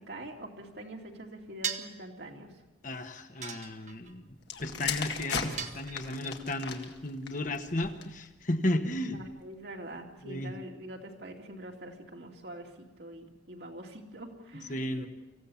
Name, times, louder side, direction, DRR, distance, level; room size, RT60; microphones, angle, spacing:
voice 1, 0.0-2.5 9.1-15.1, right 1 dB, 60° right, 1 dB, 2.6 m, -45 dB
sound 1, 1.6-2.0 3.4-4.1 5.6-6.3, right 7 dB, 40° right, 1.2 m, -37 dB
voice 2, 2.8-4.3 4.6-9.2 10.2-10.5 14.7-15.1, left 1 dB, 45° left, 6 dB, 1.4 m, -34 dB
sound 2, 4.4-8.3 9.0-9.3, left 6 dB, 65° left, 1.9 m, -37 dB
25.5 x 15.5 x 7.2 m, 1.1 s
head